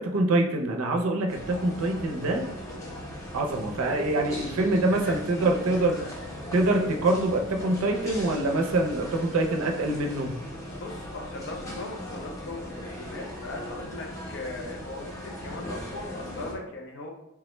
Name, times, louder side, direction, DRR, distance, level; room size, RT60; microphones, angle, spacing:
voice 1, 0.0-2.5 3.3-6.0 6.5-10.3, right 2 dB, 85° right, 3 dB, 0.5 m, -25 dB
sound 1, 1.3-16.6, left 1 dB, 15° left, 0.6 m, -39 dB
voice 2, 4.9-6.1 10.8-17.1, left 2 dB, 60° left, 1 dB, 0.6 m, -39 dB
3.5 x 2.1 x 3.0 m, 0.86 s
head